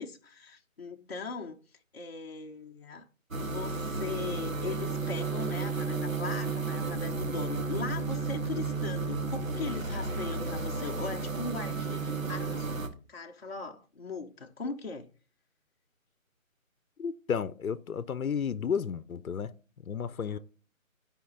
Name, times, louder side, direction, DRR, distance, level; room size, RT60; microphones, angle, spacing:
voice 1, 0.0-1.6 1.9-3.0 3.4-12.8 13.1-15.1 20.3-20.4, left 4 dB, 45° left, 0.9 m, -39 dB
sound 1, 3.3-12.9, right 4 dB, 70° right, 1.8 m, -33 dB
voice 2, 17.0-19.5 19.9-20.4, left 7 dB, 80° left, 0.8 m, -32 dB
11.5 x 5.2 x 3.8 m
figure-of-eight pair, 170°, 42 cm